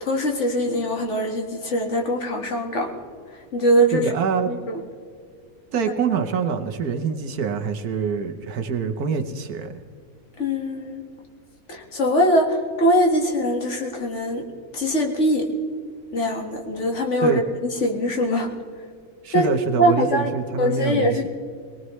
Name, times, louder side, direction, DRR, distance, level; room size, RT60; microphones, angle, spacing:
voice 1, 0.0-2.9 3.5-4.1 4.5-4.8 10.4-11.0 11.7-14.4 14.7-15.5 16.1-18.5 19.3-19.5 19.8-20.3 20.6-21.3, equal, 50° left, 2 dB, 2.1 m, -22 dB
voice 2, 3.9-4.5 5.7-9.8 17.2-17.4 19.2-21.3, right 6 dB, 75° right, 7 dB, 1.5 m, -25 dB
22.0 x 19.0 x 3.2 m, 2.2 s
omnidirectional pair, 1.6 m